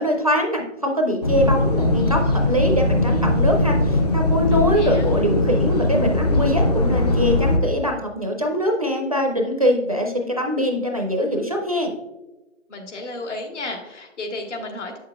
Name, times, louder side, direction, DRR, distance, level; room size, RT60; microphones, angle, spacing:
voice 1, 0.0-11.9, equal, 30° right, 2 dB, 0.4 m, -23 dB
sound 1, 1.2-7.6, left 1 dB, 30° left, 0.5 m, -20 dB
voice 2, 4.5-5.1 12.7-15.0, left 2 dB, 65° left, 2 dB, 1.6 m, -33 dB
8.2 x 6.4 x 2.3 m, 1.1 s
figure-of-eight pair, 150°, 39 cm